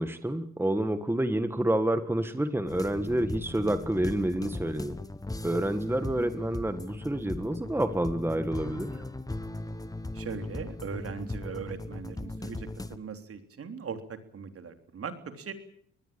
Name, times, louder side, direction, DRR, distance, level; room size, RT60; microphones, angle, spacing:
voice 1, 0.0-5.0 5.4-8.9, right 1 dB, 5° right, 10 dB, 1.7 m, -28 dB
sound 1, 2.7-13.0, left 2 dB, 10° left, 1.4 m, -38 dB
voice 2, 10.1-15.5, right 5 dB, 50° right, 8 dB, 3.4 m, -39 dB
24.0 x 20.0 x 8.7 m, 0.66 s
cardioid pair, 90°, 30 cm